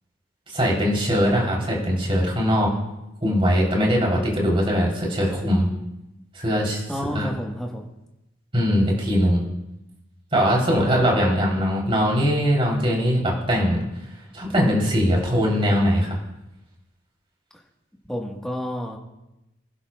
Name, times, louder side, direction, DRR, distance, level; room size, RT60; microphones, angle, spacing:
voice 1, 0.5-2.7 3.2-5.7 6.3-6.8 7.1-7.3 8.5-9.4 10.3-13.8 14.3-16.2, equal, 30° right, -3 dB, 3.4 m, -21 dB
voice 2, 6.9-7.9 11.0-11.1 18.1-19.0, equal, 5° left, 0 dB, 1.4 m, -30 dB
25.5 x 11.5 x 2.3 m, 0.92 s
head